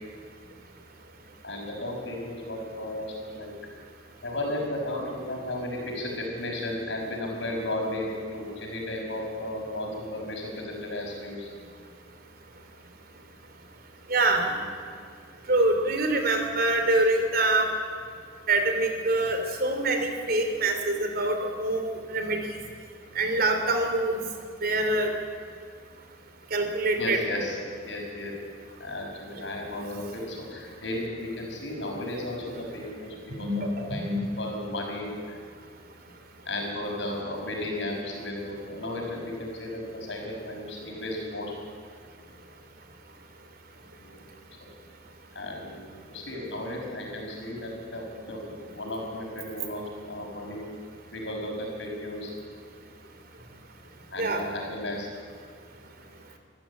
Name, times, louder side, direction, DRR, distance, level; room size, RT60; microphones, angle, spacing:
voice 1, 1.4-3.5 4.2-11.5 14.1-14.7 16.2-16.4 27.0-27.6 27.8-28.3 28.7-34.0 34.4-35.4 36.5-41.5 44.0-44.2 45.3-50.7 51.1-52.3 54.1-55.1, left 1 dB, 75° left, 0 dB, 6.1 m, -34 dB
voice 2, 14.1-14.5 15.5-17.7 18.5-22.4 23.2-24.2 24.6-25.1 26.5-27.2 33.4-33.6 34.0-34.2 54.2-54.4, right 2 dB, 55° right, 5 dB, 3.1 m, -25 dB
25.0 x 14.0 x 8.6 m, 2.1 s
head